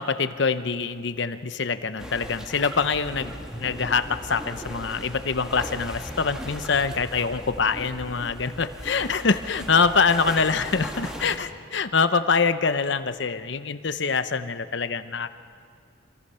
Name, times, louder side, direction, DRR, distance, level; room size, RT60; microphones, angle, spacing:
voice 1, 0.0-15.3, left 5 dB, 60° left, 11 dB, 0.8 m, -25 dB
sound 1, 2.0-11.4, equal, 5° right, 1.8 m, -38 dB
28.0 x 23.0 x 5.6 m, 2.3 s
head